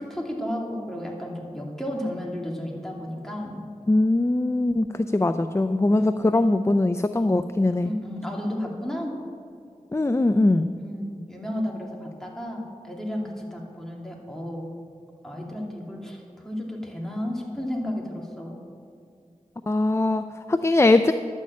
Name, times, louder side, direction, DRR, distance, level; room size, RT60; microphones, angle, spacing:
voice 1, 0.0-3.6 6.0-6.4 7.8-9.2 10.8-14.8 15.2-18.6, left 1 dB, 5° left, -2 dB, 2.5 m, -33 dB
voice 2, 3.9-7.9 9.9-10.7 19.7-21.1, left 2 dB, 20° left, 10 dB, 0.4 m, -21 dB
11.0 x 6.4 x 8.4 m, 2.4 s
wide cardioid pair, 45°, 13 cm